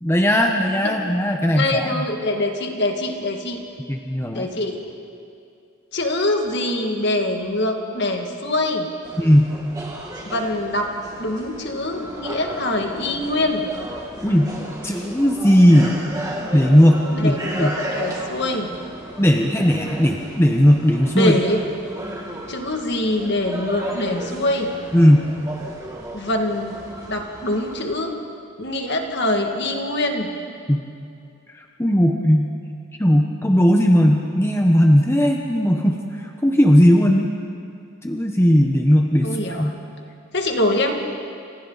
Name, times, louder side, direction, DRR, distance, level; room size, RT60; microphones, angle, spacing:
voice 1, 0.0-2.0 3.9-4.5 9.2-9.5 14.2-14.5 14.8-15.9 16.5-17.7 19.2-21.3 24.9-25.2 30.7-30.8 31.8-32.5 33.0-36.0 36.4-37.3 38.0-39.3 39.6-39.7, equal, 10° left, 2 dB, 0.9 m, -17 dB
voice 2, 1.5-3.6 4.3-4.8 5.9-8.9 10.3-10.9 11.2-13.6 17.1-18.7 21.2-21.6 22.5-24.7 26.1-26.8 27.1-28.1 28.6-30.3 39.2-39.7 40.3-40.9, left 1 dB, 50° left, 3 dB, 2.1 m, -24 dB
sound 1, 9.0-27.8, equal, 15° right, 2.3 m, -34 dB
29.5 x 26.5 x 4.1 m, 2.5 s
head